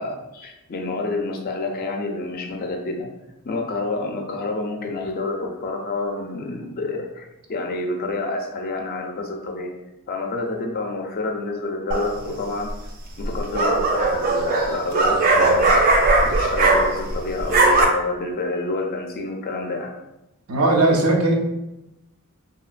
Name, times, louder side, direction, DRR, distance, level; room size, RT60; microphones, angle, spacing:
voice 1, 0.0-3.1 3.4-9.7 10.1-12.7 13.2-15.9 16.2-19.9, left 2 dB, 45° left, 2 dB, 0.4 m, -28 dB
sound 1, 11.9-12.3 13.2-17.1 17.4-17.8, right 2 dB, 40° right, 0.4 m, -18 dB
voice 2, 20.5-21.3, right 2 dB, 85° right, 0 dB, 0.6 m, -18 dB
2.9 x 2.7 x 2.4 m, 0.92 s
head